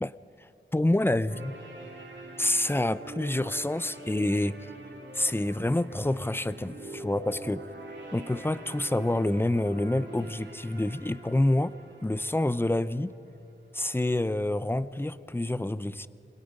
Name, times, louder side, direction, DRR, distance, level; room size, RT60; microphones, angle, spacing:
voice 1, 0.4-1.5 2.4-4.7 5.1-7.6 8.1-11.7 12.0-13.1 13.7-16.1, left 1 dB, 10° left, 15 dB, 0.5 m, -27 dB
sound 1, 1.3-13.3, right 1 dB, 65° right, 3.2 m, -45 dB
28.0 x 21.5 x 5.3 m, 2.6 s
wide cardioid pair, 85°, 21 cm